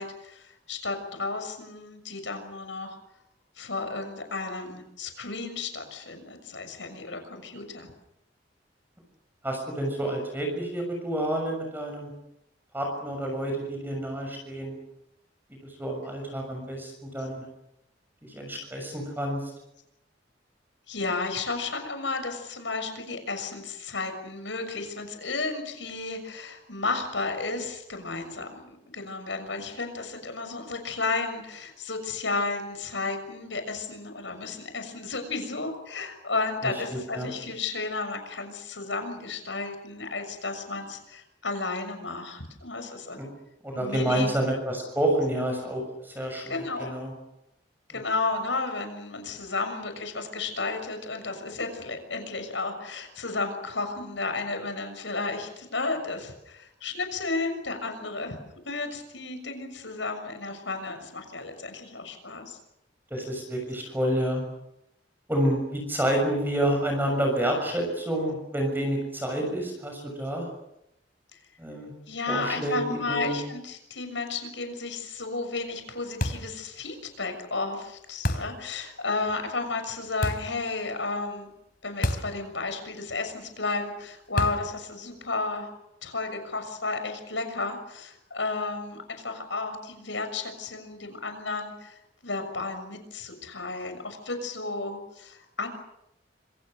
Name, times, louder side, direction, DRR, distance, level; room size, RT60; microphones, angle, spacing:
voice 1, 0.0-3.0 3.6-7.9 20.9-43.2 43.7-44.3 46.5-46.9 47.9-58.4 58.6-62.6 72.1-81.5 81.8-85.7 86.0-95.7, left 3 dB, 85° left, 7 dB, 6.7 m, -33 dB
voice 2, 9.4-12.1 12.7-14.7 15.6-17.4 18.2-19.5 36.6-37.3 43.2-43.3 43.6-47.1 47.9-48.0 63.1-64.4 65.3-70.5 71.6-71.9 72.3-73.3, right 1 dB, 10° right, 2 dB, 6.7 m, -29 dB
sound 1, 76.2-76.6 78.2-78.6 80.2-80.6 82.0-82.4 82.7-82.8 84.4-84.8, left 1 dB, 50° left, 3.3 m, -29 dB
26.5 x 26.5 x 6.6 m, 0.81 s
head